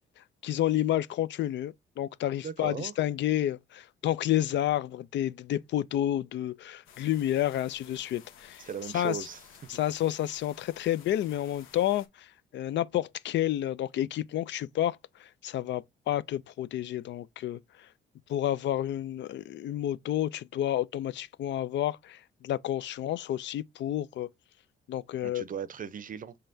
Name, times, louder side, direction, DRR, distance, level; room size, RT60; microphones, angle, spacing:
voice 1, 0.4-8.6 8.9-9.3 9.7-12.3 12.5-17.6 18.3-24.3 24.9-25.4, left 12 dB, 65° left, 0.4 m, -30 dB
voice 2, 2.4-2.9 8.6-9.4 9.7-9.8 25.2-26.4, right 8 dB, 45° right, 0.6 m, -37 dB
sound 1, 6.9-12.1, left 8 dB, 90° left, 1.0 m, -54 dB
5.5 x 3.3 x 2.6 m
cardioid pair, 90°, 20 cm